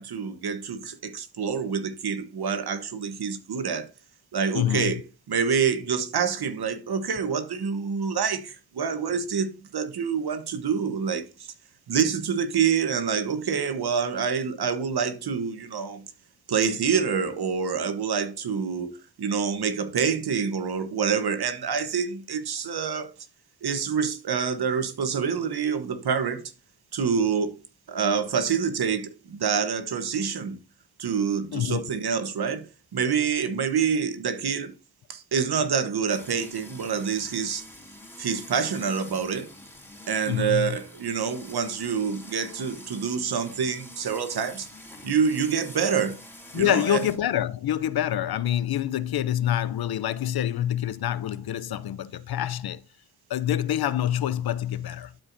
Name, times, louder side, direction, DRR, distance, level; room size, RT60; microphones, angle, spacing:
voice 1, 0.0-3.9 4.3-5.0 5.3-11.5 11.9-16.1 16.5-23.1 23.6-26.5 26.9-27.6 27.9-30.6 31.0-34.7 35.1-37.6 38.2-39.5 40.1-44.7 45.0-46.2 46.5-47.0, right 6 dB, 65° right, 1.1 m, -27 dB
voice 2, 4.5-4.9 31.5-31.8 40.3-40.8 46.5-52.8 53.3-55.1, left 11 dB, 65° left, 0.6 m, -26 dB
sound 1, 36.1-47.2, left 1 dB, 5° left, 2.6 m, -46 dB
12.0 x 4.7 x 2.6 m
supercardioid pair, 45°, 40 cm